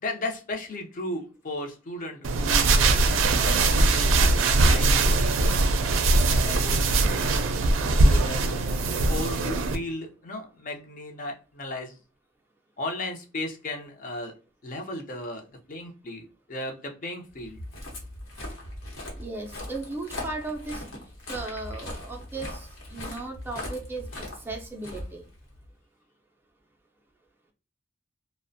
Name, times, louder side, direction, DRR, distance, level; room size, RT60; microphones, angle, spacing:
voice 1, 0.0-6.0 6.4-7.4 8.0-12.0 12.8-14.3 14.6-17.6, left 1 dB, 45° left, 3 dB, 0.5 m, -36 dB
sound 1, 2.2-9.8, right 2 dB, 90° right, 0.4 m, -21 dB
Walk footsteps, 17.4-25.7, left 1 dB, 85° left, 0.9 m, -39 dB
voice 2, 19.2-20.8 21.3-24.1 24.4-25.2, right 3 dB, 10° right, 1 dB, 0.4 m, -36 dB
2.5 x 2.1 x 2.5 m, 0.35 s
head